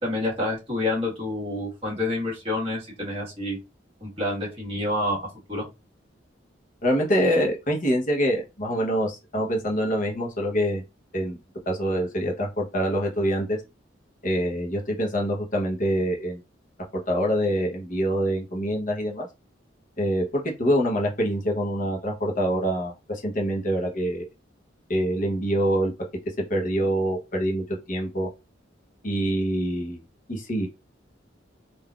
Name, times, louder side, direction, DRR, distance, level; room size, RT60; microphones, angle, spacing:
voice 1, 0.0-3.6 4.0-5.2 5.5-5.7, left 1 dB, 30° right, -4 dB, 1.4 m, -28 dB
voice 2, 6.8-10.8 11.1-11.4 11.7-13.6 14.2-16.4 17.1-19.3 20.0-24.3 24.9-25.9 26.5-28.3 29.0-30.0 30.3-30.7, equal, 45° left, 0 dB, 0.9 m, -25 dB
3.6 x 2.5 x 2.3 m, 0.25 s
head